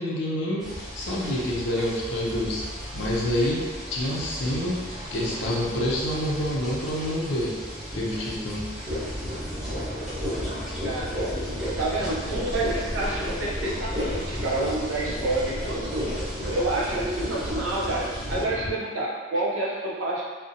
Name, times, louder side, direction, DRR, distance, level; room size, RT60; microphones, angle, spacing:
voice 1, 0.0-2.7 2.9-7.6 7.9-8.8, left 1 dB, 60° left, -4 dB, 0.4 m, -28 dB
sound 1, 0.6-18.4, equal, 5° right, 0.6 m, -37 dB
sound 2, 8.8-18.7, equal, 30° right, 0.9 m, -32 dB
voice 2, 10.8-16.1 16.5-20.2, right 2 dB, 90° right, -4 dB, 0.6 m, -29 dB
2.6 x 2.0 x 2.6 m, 1.5 s
head